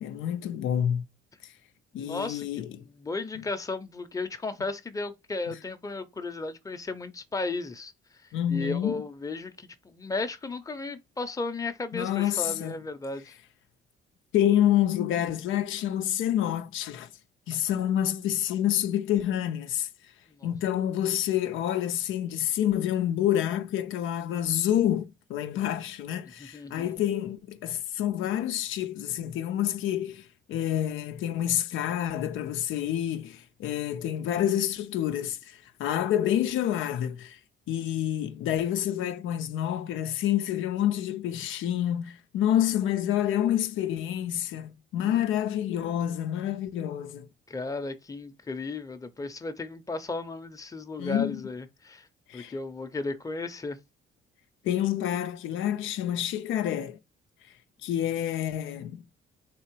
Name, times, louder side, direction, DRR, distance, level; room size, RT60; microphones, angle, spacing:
voice 1, 0.0-1.1 1.9-2.8 3.4-3.5 5.5-5.6 8.3-8.9 11.9-12.8 14.3-17.1 17.5-19.9 20.4-37.4 37.7-47.3 51.0-51.4 52.3-52.5 54.6-57.0 57.8-59.0, left 11 dB, 85° left, 0.5 m, -28 dB
voice 2, 1.9-7.9 8.5-13.4 20.3-20.5 26.4-27.0 45.0-45.1 47.5-52.1 52.3-53.8, left 3 dB, 15° left, 0.7 m, -35 dB
3.7 x 2.9 x 4.5 m
cardioid pair, 90°, 20 cm